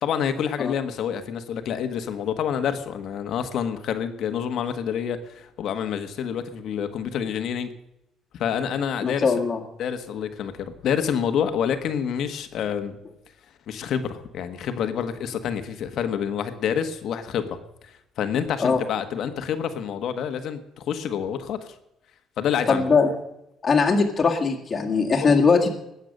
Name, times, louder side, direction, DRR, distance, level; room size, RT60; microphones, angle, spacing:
voice 1, 0.0-7.7 8.3-9.3 9.8-13.0 13.7-17.6 17.8-21.7 22.4-22.8 25.2-25.4, left 8 dB, 55° left, 9 dB, 1.3 m, -28 dB
voice 2, 9.0-9.6 18.6-18.8 22.7-23.1 23.6-25.7, left 5 dB, 25° left, -1 dB, 1.9 m, -20 dB
20.0 x 8.1 x 6.5 m, 0.84 s
cardioid pair, 155°, 0 cm